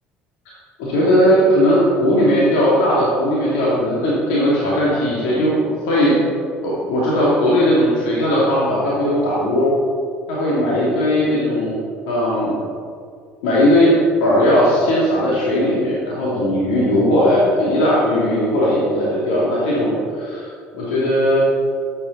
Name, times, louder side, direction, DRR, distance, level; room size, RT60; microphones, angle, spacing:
voice 1, 0.8-6.2 6.6-9.7 10.3-11.8 12.1-12.6 13.4-13.9 14.2-21.4, equal, 65° left, -7 dB, 2.7 m, -17 dB
13.0 x 9.8 x 4.1 m, 2.3 s
figure-of-eight pair, 60°, 6 cm